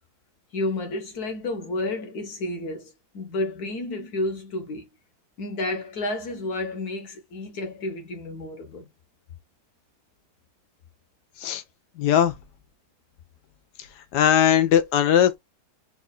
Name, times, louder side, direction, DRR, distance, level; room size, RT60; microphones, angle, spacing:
voice 1, 0.5-4.8 5.4-8.8, left 2 dB, 65° left, 1.6 m, -31 dB
voice 2, 12.0-12.3 14.1-15.3, left 10 dB, 90° left, 1.3 m, -19 dB
4.5 x 2.4 x 4.0 m
omnidirectional pair, 1.7 m